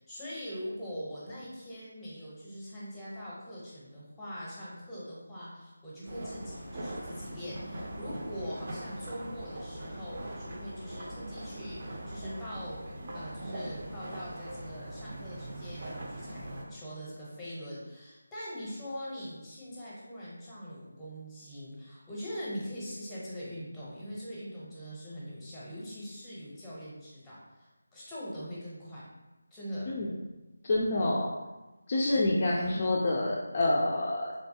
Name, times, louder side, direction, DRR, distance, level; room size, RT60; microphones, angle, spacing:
voice 1, 0.1-12.9 13.1-29.0 29.5-29.9 32.4-32.7, equal, 5° left, -8 dB, 0.8 m, -42 dB
sound 1, 6.1-16.6, right 1 dB, 40° right, 0.6 m, -41 dB
voice 2, 30.6-31.3 31.9-34.3, left 2 dB, 35° left, -3 dB, 0.3 m, -27 dB
3.1 x 2.3 x 2.7 m, 1.1 s
figure-of-eight pair, 165°, 0 cm